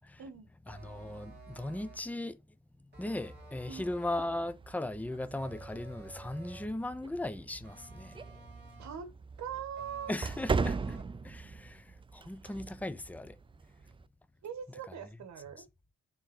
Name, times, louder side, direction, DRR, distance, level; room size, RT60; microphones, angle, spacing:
voice 1, 0.7-2.4 3.0-8.2 10.1-11.0 11.2-13.4, left 1 dB, 5° left, 0.8 m, -38 dB
sound 1, 0.7-2.1 2.9-4.4 5.4-6.8 7.6-9.1 9.8-11.2, right 1 dB, 35° right, 3.5 m, -52 dB
sound 2, 3.2-14.1, right 4 dB, 15° right, 0.4 m, -40 dB
voice 2, 8.8-9.1 9.4-10.1 14.4-15.7, right 8 dB, 65° right, 1.9 m, -41 dB
6.5 x 3.7 x 6.3 m
cardioid pair, 90°, 30 cm